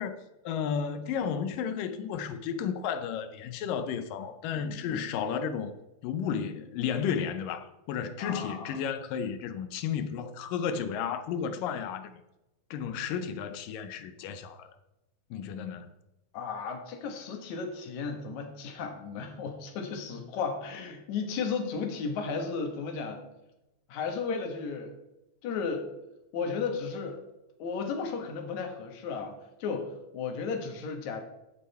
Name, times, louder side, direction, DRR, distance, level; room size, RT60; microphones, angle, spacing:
voice 1, 0.0-5.8 6.0-12.2 12.7-14.8 15.3-15.9, left 7 dB, 75° left, 2.2 m, -33 dB
voice 2, 4.5-5.0 8.2-8.8 16.3-23.3 23.9-24.9 25.4-25.9 26.3-27.2 27.6-29.3 29.6-31.2, left 5 dB, 55° left, 2.6 m, -34 dB
15.0 x 7.8 x 4.3 m
omnidirectional pair, 4.3 m